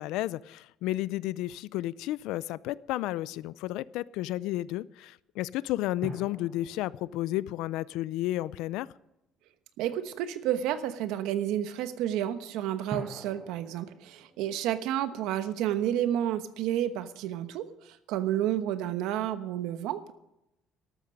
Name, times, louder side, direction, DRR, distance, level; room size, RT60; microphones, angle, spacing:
voice 1, 0.0-8.9, left 15 dB, 80° left, 20 dB, 0.4 m, -32 dB
sound 1, 1.6-2.4 6.0-8.9 12.9-16.1, right 2 dB, 30° right, 1.2 m, -46 dB
voice 2, 9.8-20.1, right 11 dB, 85° right, 11 dB, 1.1 m, -30 dB
13.0 x 12.5 x 5.3 m, 0.88 s
cardioid pair, 160°, 0 cm